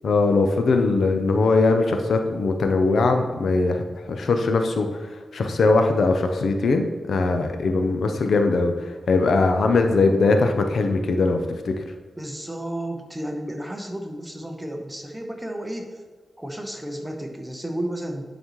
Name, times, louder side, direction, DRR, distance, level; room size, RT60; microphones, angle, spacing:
voice 1, 0.0-11.8, left 3 dB, 75° left, 5 dB, 0.6 m, -21 dB
voice 2, 12.2-16.0 16.4-18.3, right 1 dB, 10° right, 3 dB, 0.9 m, -32 dB
11.0 x 4.0 x 3.1 m, 1.4 s
wide cardioid pair, 100°, 0 cm